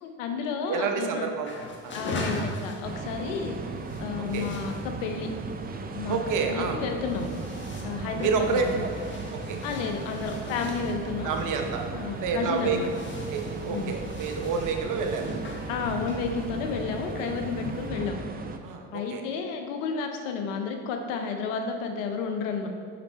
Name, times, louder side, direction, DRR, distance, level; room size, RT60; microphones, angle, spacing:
voice 1, 0.0-1.3 1.9-3.6 4.0-5.3 5.9-7.3 7.8-8.9 9.6-11.3 11.9-12.9 13.7-14.0 15.7-18.2 18.9-22.7, left 5 dB, 90° left, 4 dB, 0.9 m, -31 dB
voice 2, 0.7-1.5 1.8-1.9 2.2-2.3 4.3-4.5 6.1-6.8 8.2-9.0 9.5-9.6 11.2-11.8 12.2-12.8 13.3-15.3 18.6-19.2, right 5 dB, 55° right, 3 dB, 0.9 m, -28 dB
sound 1, 1.4-17.9, left 2 dB, 30° left, 1.2 m, -41 dB
sound 2, 2.8-18.6, right 3 dB, 25° right, 0.6 m, -36 dB
6.9 x 4.5 x 4.3 m, 2.1 s
supercardioid pair, 80°, 37 cm